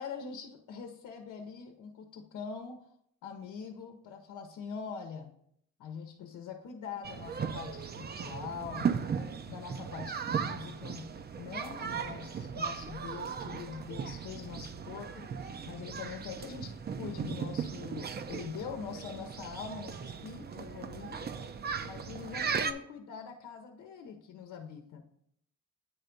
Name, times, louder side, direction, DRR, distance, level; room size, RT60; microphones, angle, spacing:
voice 1, 0.0-2.9 3.2-5.3 5.8-9.2 9.5-21.3 21.8-25.0, left 6 dB, 85° left, 4 dB, 0.8 m, -43 dB
sound 1, 7.0-22.7, right 6 dB, 35° right, 0.5 m, -37 dB
9.3 x 3.4 x 5.2 m, 0.71 s
cardioid pair, 90°, 30 cm